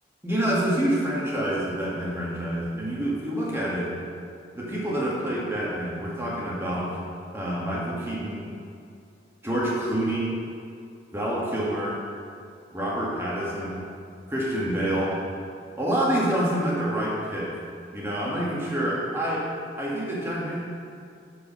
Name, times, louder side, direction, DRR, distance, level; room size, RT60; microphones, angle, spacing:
voice 1, 0.2-3.9 4.6-6.9 7.3-8.5 9.4-10.3 11.1-11.9 12.7-13.8 14.3-15.1 15.8-17.5 17.9-19.4 19.8-20.6, right 1 dB, 15° right, -6 dB, 1.7 m, -27 dB
7.6 x 4.7 x 6.1 m, 2.4 s
head